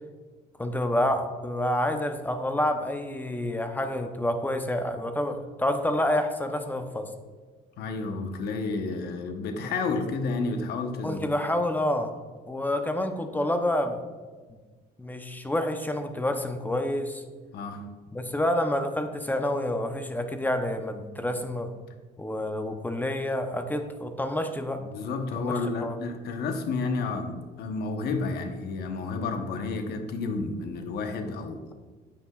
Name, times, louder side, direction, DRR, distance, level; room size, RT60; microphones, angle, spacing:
voice 1, 0.6-7.1 9.6-9.7 11.0-12.2 12.5-14.0 15.0-17.2 18.1-21.7 22.2-24.8 25.4-25.5 25.8-26.0, left 1 dB, 10° left, 6 dB, 0.7 m, -28 dB
voice 2, 7.8-11.2 17.5-17.9 24.9-31.7, left 3 dB, 70° left, 6 dB, 1.0 m, -31 dB
9.5 x 8.7 x 2.4 m, 1.4 s
cardioid pair, 110°, 17 cm